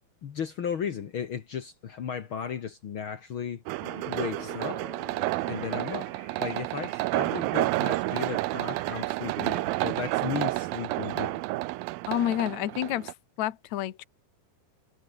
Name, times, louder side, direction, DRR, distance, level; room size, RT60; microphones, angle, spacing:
voice 1, 0.2-3.6 4.1-4.8 5.5-6.1 6.4-11.4, left 7 dB, 80° left, 1.1 m, -35 dB
sound 1, 3.7-13.1, right 20 dB, 85° right, 2.0 m, -30 dB
sound 2, 3.8-7.3, left 2 dB, 10° left, 2.6 m, -47 dB
sound 3, 5.2-10.1, right 5 dB, 65° right, 7.7 m, -50 dB
voice 2, 12.1-13.1 13.4-14.0, left 12 dB, 60° left, 2.1 m, -29 dB
omnidirectional pair, 4.9 m